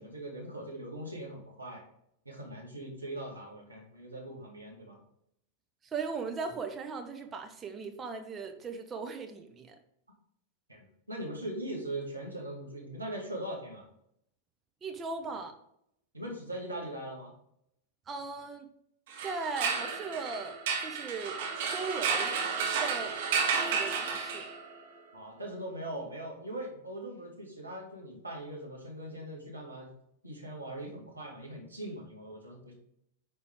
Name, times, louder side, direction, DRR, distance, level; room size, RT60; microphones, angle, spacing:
voice 1, 0.0-1.9 2.3-5.0 10.7-13.9 16.1-17.3 25.1-29.9 30.2-32.7, right 1 dB, 85° right, 0 dB, 2.1 m, -41 dB
voice 2, 5.8-9.8 14.8-15.5 18.1-18.7 19.2-21.4 21.7-22.4 22.8-23.1 23.7-24.5, right 4 dB, 20° right, 4 dB, 1.2 m, -38 dB
sound 1, 19.1-24.8, right 5 dB, 55° right, 1.9 m, -32 dB
9.6 x 4.4 x 3.7 m, 0.74 s
figure-of-eight pair, 95°, 0 cm